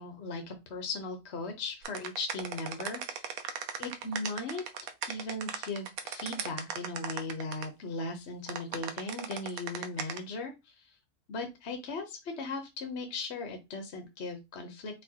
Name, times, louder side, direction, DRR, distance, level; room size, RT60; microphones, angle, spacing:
voice 1, 0.0-3.4 3.8-4.6 5.1-11.0 11.3-15.0, left 3 dB, 50° left, 5 dB, 1.1 m, -38 dB
sound 1, 1.8-7.7 8.5-10.2, right 7 dB, 70° right, 1.1 m, -37 dB
4.3 x 3.5 x 2.9 m, 0.23 s
omnidirectional pair, 1.6 m